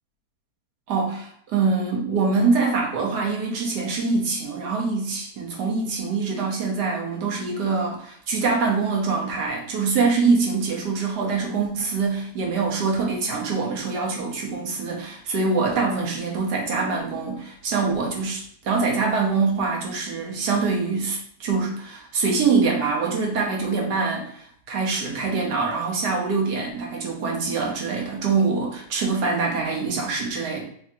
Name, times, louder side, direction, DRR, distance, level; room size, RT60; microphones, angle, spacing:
voice 1, 0.9-30.6, right 4 dB, 75° right, -1 dB, 1.4 m, -24 dB
3.6 x 3.5 x 2.7 m, 0.63 s
omnidirectional pair, 1.8 m